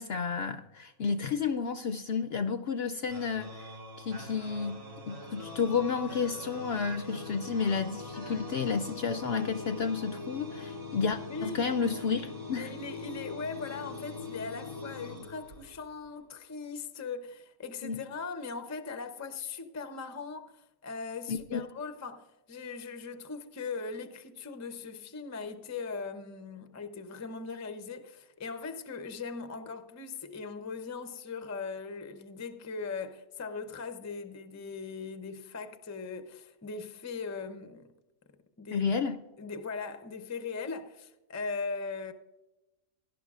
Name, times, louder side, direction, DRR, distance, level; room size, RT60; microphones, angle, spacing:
voice 1, 0.0-3.7 4.0-12.7 17.8-18.0 21.3-21.6 38.7-39.2, left 5 dB, 65° left, 0.6 m, -31 dB
sound 1, 3.1-16.0, left 3 dB, 75° right, 4.7 m, -42 dB
voice 2, 11.3-11.7 12.5-37.9 38.6-38.9 39.4-42.1, left 4 dB, 25° left, 0.3 m, -39 dB
17.5 x 11.5 x 2.4 m
omnidirectional pair, 1.5 m